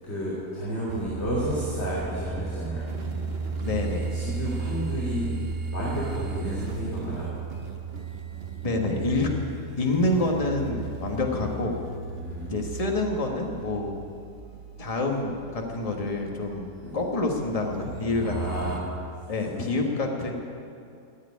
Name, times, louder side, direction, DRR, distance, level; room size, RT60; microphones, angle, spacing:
voice 1, 0.0-2.9 3.7-5.3 5.7-7.3 12.1-12.5 16.8-17.0 18.1-18.9 19.5-19.7, equal, 40° left, -8 dB, 3.3 m, -32 dB
sound 1, 0.9-18.8, right 4 dB, 40° right, 1.2 m, -35 dB
voice 2, 3.6-4.1 8.6-9.3 9.8-11.8 12.5-13.9 14.8-16.7 16.9-18.7 19.3-20.3, left 2 dB, 20° left, 1 dB, 1.6 m, -27 dB
15.0 x 8.0 x 9.7 m, 2.4 s
omnidirectional pair, 1.7 m